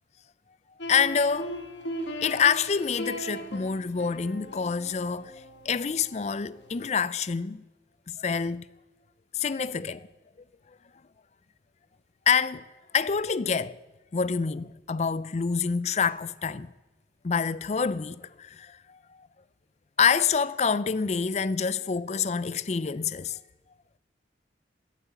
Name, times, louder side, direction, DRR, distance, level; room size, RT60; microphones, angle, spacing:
sound 1, 0.8-6.9, equal, 85° left, 1.9 m, -39 dB
voice 1, 0.9-1.6 2.2-7.6 8.1-8.7 9.3-10.1 12.3-12.7 12.9-13.8 14.1-16.7 17.2-19.3 20.0-23.4, left 6 dB, 40° left, 0.4 m, -27 dB
14.5 x 8.4 x 8.3 m
head